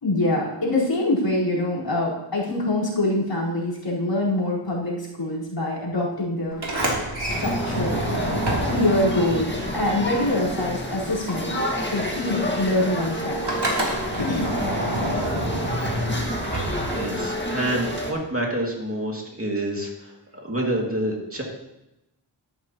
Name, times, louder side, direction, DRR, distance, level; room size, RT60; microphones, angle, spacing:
voice 1, 0.0-6.6 6.9-8.0 8.6-11.6 11.9-13.7 14.0-14.5, left 1 dB, 60° left, -7 dB, 4.7 m, -25 dB
Sliding door, 6.5-10.8 11.0-17.4, right 1 dB, 55° right, 3.3 m, -28 dB
sound 1, 7.3-18.1, left 1 dB, 20° left, 1.9 m, -30 dB
voice 2, 16.9-20.2 20.4-21.4, right 1 dB, 25° right, -1 dB, 2.5 m, -27 dB
13.0 x 11.5 x 3.1 m, 0.90 s
wide cardioid pair, 70°, 50 cm